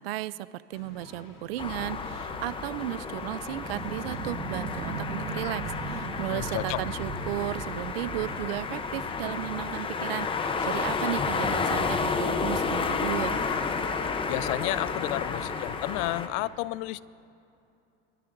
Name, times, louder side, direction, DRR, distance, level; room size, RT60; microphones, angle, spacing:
voice 1, 0.0-13.4, right 15 dB, 85° right, 17 dB, 0.5 m, -34 dB
sound 1, 0.7-16.5, left 4 dB, 90° left, 2.6 m, -48 dB
sound 2, 1.6-16.3, left 5 dB, 20° left, 0.7 m, -31 dB
sound 3, 3.5-9.5, right 4 dB, 30° right, 1.8 m, -38 dB
voice 2, 6.3-6.8 14.3-17.0, left 18 dB, 55° left, 19 dB, 0.4 m, -31 dB
24.5 x 12.5 x 2.6 m, 2.7 s
supercardioid pair, 120°, 29 cm